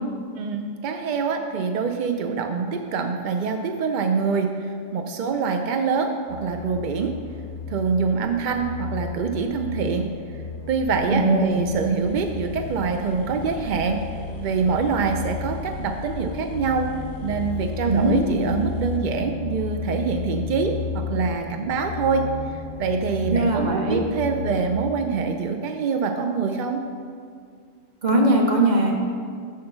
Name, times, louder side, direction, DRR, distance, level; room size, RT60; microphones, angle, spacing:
voice 1, 0.4-7.1 7.7-10.1 10.7-14.0 14.4-16.9 17.2-22.2 22.5-26.8, right 5 dB, 70° right, 5 dB, 0.4 m, -25 dB
sound 1, 6.3-24.8, left 6 dB, 65° left, 0.8 m, -34 dB
voice 2, 11.1-11.6 17.9-18.2 23.3-24.0 28.0-28.9, right 2 dB, 35° right, 1 dB, 1.0 m, -20 dB
sound 2, 11.8-11.9 12.0-19.9, left 3 dB, 20° left, 0.6 m, -43 dB
6.6 x 5.7 x 6.7 m, 2.2 s
omnidirectional pair, 1.4 m